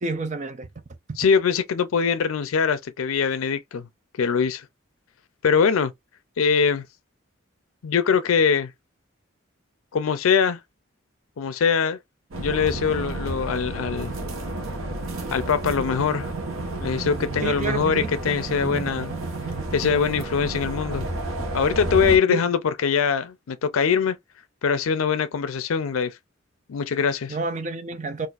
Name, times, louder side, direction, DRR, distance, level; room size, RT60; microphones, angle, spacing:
voice 1, 0.0-0.7 1.1-1.2 17.4-18.2 22.3-22.5 27.3-28.3, right 4 dB, 35° right, 0.5 m, -29 dB
voice 2, 1.2-3.9 4.2-4.7 5.4-5.9 6.4-6.8 7.8-8.7 9.9-10.6 11.4-12.0 12.4-14.1 15.3-16.3 16.8-19.1 19.7-21.1 21.5-24.2 24.6-26.2 26.7-27.4, left 6 dB, 85° left, 0.4 m, -22 dB
sound 1, 12.3-22.2, right 2 dB, 85° right, 1.0 m, -31 dB
4.0 x 2.5 x 2.4 m
head